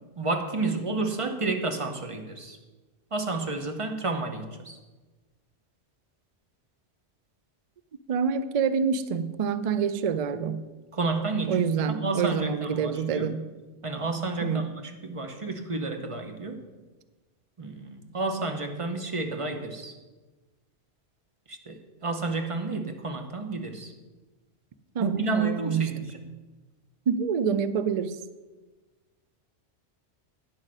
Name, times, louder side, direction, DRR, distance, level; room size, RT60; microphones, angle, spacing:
voice 1, 0.2-2.6 3.1-4.8 10.9-13.3 13.8-16.6 17.6-19.9 21.5-23.9 25.0-26.2, right 3 dB, 30° right, 0.8 m, -31 dB
voice 2, 8.1-10.6 11.5-13.4 14.4-14.7 25.0-25.9 27.1-28.2, right 6 dB, 55° right, 0.4 m, -26 dB
9.8 x 6.4 x 6.2 m
omnidirectional pair, 1.2 m